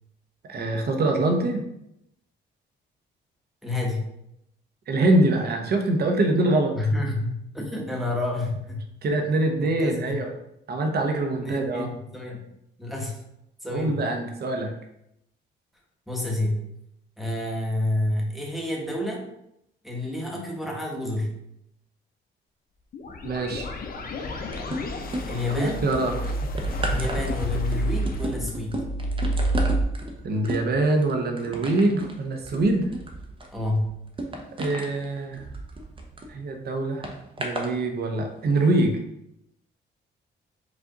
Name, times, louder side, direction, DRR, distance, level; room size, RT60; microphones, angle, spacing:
voice 1, 0.5-1.6 4.9-6.7 9.0-10.3 10.7-11.9 13.7-14.7 23.2-23.7 25.5-26.2 30.2-32.9 34.6-35.5 36.3-37.1 37.4-39.0, right 2 dB, 55° right, 4 dB, 0.9 m, -24 dB
voice 2, 3.6-4.0 6.7-8.8 9.6-10.2 11.3-12.4 12.8-13.3 13.6-14.0 16.1-16.6 17.2-19.2 19.8-21.4 25.3-25.8 26.9-28.8 33.5-34.0, left 2 dB, ahead, -2 dB, 1.2 m, -29 dB
sound 1, 22.9-29.8, right 1 dB, 45° left, 0.7 m, -29 dB
sound 2, 24.5-25.6 25.9-36.3 37.0-37.7 38.4-38.6, right 1 dB, 25° right, 0.8 m, -34 dB
4.9 x 2.5 x 3.9 m, 0.80 s
cardioid pair, 90°, 20 cm